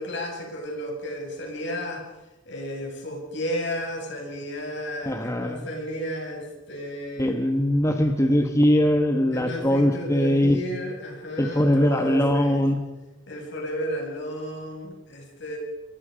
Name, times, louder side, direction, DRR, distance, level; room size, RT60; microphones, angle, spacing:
voice 1, 0.0-2.0 2.5-7.4 9.3-12.6 13.3-15.6, equal, 60° left, 1 dB, 7.4 m, -33 dB
voice 2, 5.0-5.7 7.2-10.6 11.4-12.8, left 1 dB, 15° left, 5 dB, 1.6 m, -21 dB
28.5 x 23.0 x 5.3 m, 1.0 s
head